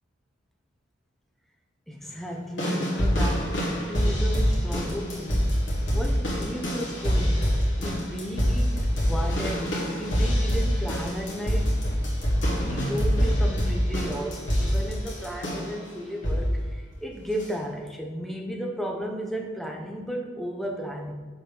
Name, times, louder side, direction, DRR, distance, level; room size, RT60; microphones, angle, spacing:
voice 1, 1.9-5.5 5.9-7.5 7.8-9.7 10.0-11.8 12.4-21.1, equal, ahead, 1 dB, 0.5 m, -34 dB
sound 1, 2.6-15.8 16.2-16.6 17.4-17.5, equal, 60° left, 1.6 m, -25 dB
6.8 x 3.0 x 5.1 m, 1.4 s
head